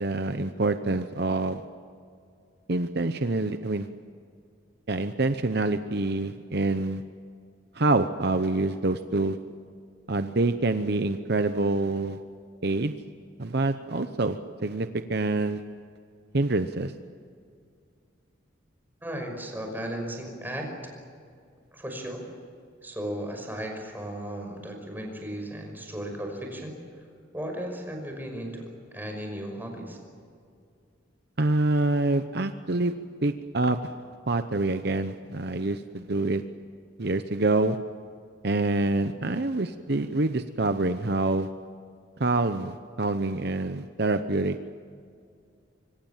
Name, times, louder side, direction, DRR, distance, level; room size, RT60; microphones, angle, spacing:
voice 1, 0.0-1.6 2.7-3.9 4.9-7.0 7.7-9.4 10.1-12.2 12.6-12.9 13.4-15.6 16.3-16.9 31.4-32.9 33.2-33.9 34.3-36.4 37.0-37.8 38.4-41.5 42.2-44.6, right 2 dB, 55° right, 9 dB, 0.9 m, -26 dB
voice 2, 19.0-20.9 21.7-22.2 22.8-26.8 27.3-30.0, right 1 dB, 10° right, 3 dB, 5.6 m, -35 dB
25.5 x 25.5 x 7.4 m, 2.3 s
head